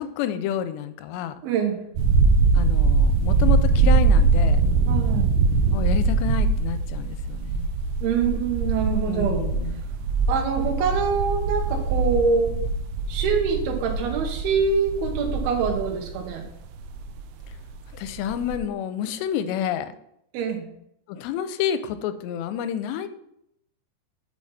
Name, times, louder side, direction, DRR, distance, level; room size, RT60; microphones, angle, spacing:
voice 1, 0.0-1.3 2.5-4.6 5.7-7.7 9.1-9.8 17.9-19.9 21.1-23.1, left 10 dB, 85° left, 11 dB, 2.7 m, -29 dB
voice 2, 1.4-1.8 4.9-5.4 8.0-9.5 10.3-12.6 13.1-16.4 20.3-20.6, right 5 dB, 70° right, 3 dB, 3.0 m, -25 dB
sound 1, 2.0-17.7 18.0-18.6, right 4 dB, 90° right, 2.1 m, -22 dB
8.4 x 6.9 x 4.1 m, 0.76 s
omnidirectional pair, 5.0 m